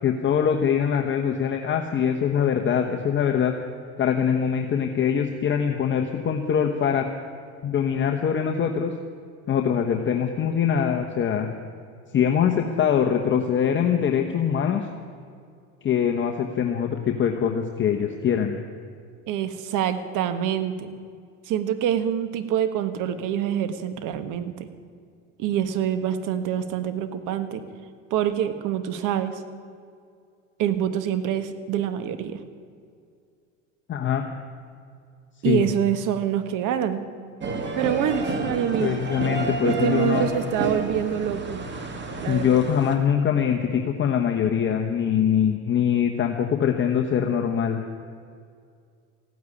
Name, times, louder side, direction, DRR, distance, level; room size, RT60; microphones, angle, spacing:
voice 1, 0.0-3.5 4.0-7.1 7.6-8.9 9.5-11.5 12.1-14.8 15.8-18.6 33.9-34.2 35.4-35.7 38.8-40.3 42.3-47.8, left 8 dB, 35° left, 3 dB, 1.2 m, -23 dB
voice 2, 19.3-20.9 21.5-24.7 25.4-27.6 28.1-29.4 30.6-32.4 35.4-37.0 37.7-38.9 39.6-41.6 42.2-42.6, right 9 dB, 60° right, 11 dB, 1.5 m, -26 dB
sound 1, 37.4-42.9, right 3 dB, 30° right, 2.2 m, -30 dB
15.5 x 9.4 x 9.8 m, 2.2 s
supercardioid pair, 110°, 36 cm